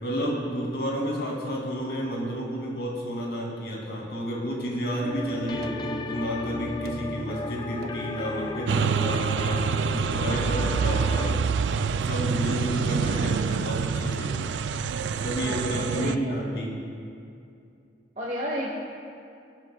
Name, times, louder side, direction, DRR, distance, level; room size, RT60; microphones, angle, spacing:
voice 1, 0.0-11.4 12.0-14.4 15.2-16.7, equal, 65° left, -3 dB, 2.7 m, -31 dB
sound 1, 5.0-11.3, left 2 dB, 25° left, 0.4 m, -35 dB
sound 2, 5.6-6.0 6.9-7.1 7.8-8.1 8.8-9.0 9.3-9.6 10.3-10.9 11.7-12.1 12.9-13.2, right 2 dB, 60° right, 0.7 m, -44 dB
sound 3, 8.7-16.2, right 5 dB, 80° right, 0.4 m, -26 dB
voice 2, 15.4-16.8 18.2-18.7, equal, 40° right, -4 dB, 1.2 m, -34 dB
22.5 x 8.0 x 2.3 m, 2.5 s
head